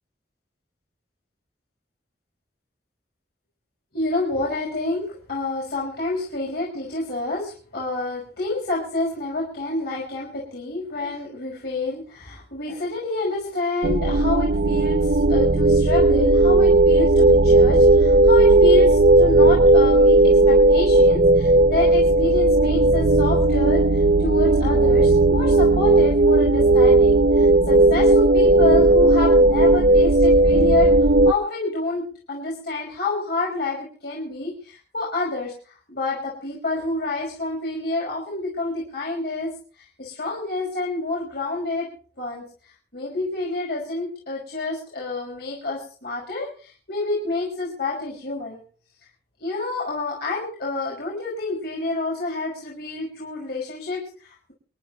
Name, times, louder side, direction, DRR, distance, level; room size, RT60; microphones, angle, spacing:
voice 1, 3.9-30.9 31.2-35.5 35.9-41.9 42.2-42.4 42.9-48.6 49.4-54.5, left 2 dB, 60° left, -4 dB, 5.7 m, -28 dB
sound 1, 13.8-31.3, right 2 dB, 60° right, 0.6 m, -15 dB
28.0 x 11.5 x 3.1 m, 0.41 s
head